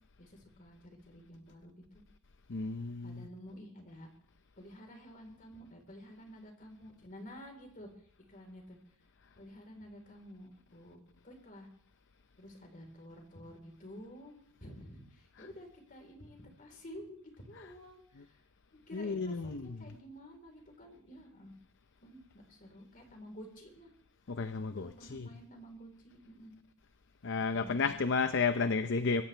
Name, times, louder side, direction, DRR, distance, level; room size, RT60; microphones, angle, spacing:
voice 1, 0.2-2.0 3.0-4.1 4.6-7.9 8.2-8.8 9.4-11.0 11.2-11.7 12.4-14.3 14.6-18.4 18.7-21.5 22.0-23.9 24.8-26.6 27.5-28.0, equal, 40° left, 3 dB, 4.1 m, -51 dB
voice 2, 2.5-3.3 15.4-15.5 17.5-17.7 18.2-18.3 18.9-19.8 24.3-25.3 27.2-29.2, left 4 dB, 55° left, 10 dB, 0.7 m, -32 dB
25.0 x 15.0 x 3.4 m, 0.67 s
head